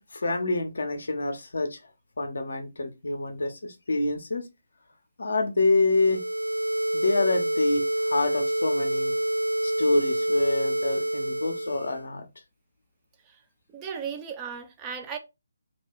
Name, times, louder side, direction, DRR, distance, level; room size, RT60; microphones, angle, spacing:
voice 1, 0.0-1.8 2.2-4.4 5.2-6.2 6.9-9.1 9.6-12.2, left 2 dB, 60° left, 0.6 m, -27 dB
sound 1, 5.9-12.0, right 1 dB, 85° right, 0.4 m, -27 dB
voice 2, 13.7-15.2, right 7 dB, 15° right, 0.4 m, -36 dB
2.3 x 2.2 x 3.5 m
figure-of-eight pair, 145°, 0 cm